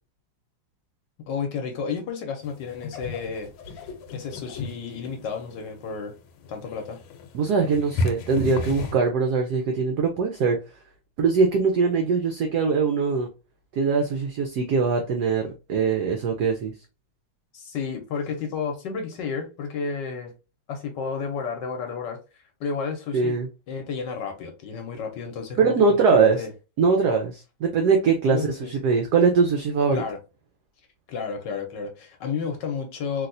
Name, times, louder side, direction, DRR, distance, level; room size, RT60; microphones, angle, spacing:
voice 1, 1.3-6.1 6.5-7.0 17.5-20.3 20.7-22.2 22.6-23.4 23.7-26.5 28.3-28.7 29.9-30.2 31.1-33.3, left 5 dB, 65° left, 1.2 m, -32 dB
sound 1, 2.4-9.0, left 2 dB, 85° left, 1.5 m, -33 dB
voice 2, 7.3-10.6 11.2-13.3 13.7-16.7 23.1-23.5 25.6-26.4 26.8-30.0, right 5 dB, 80° right, 0.9 m, -22 dB
3.2 x 2.7 x 2.5 m
omnidirectional pair, 2.3 m